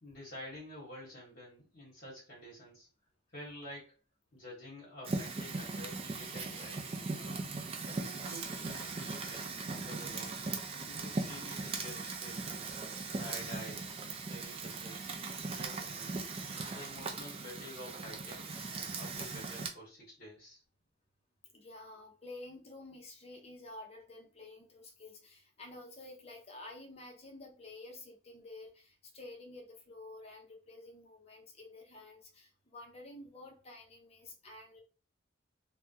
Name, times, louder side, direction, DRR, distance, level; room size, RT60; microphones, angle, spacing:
voice 1, 0.0-2.9 3.3-4.0 4.3-7.4 7.8-10.5 10.8-12.8 13.2-13.9 14.3-15.1 15.4-16.3 16.7-20.6, left 1 dB, 50° left, -5 dB, 1.2 m, -49 dB
Fire, 5.0-19.7, right 3 dB, 30° right, 0.4 m, -39 dB
voice 2, 21.4-34.8, left 2 dB, 30° left, 2 dB, 0.7 m, -50 dB
3.5 x 2.2 x 2.7 m, 0.35 s
head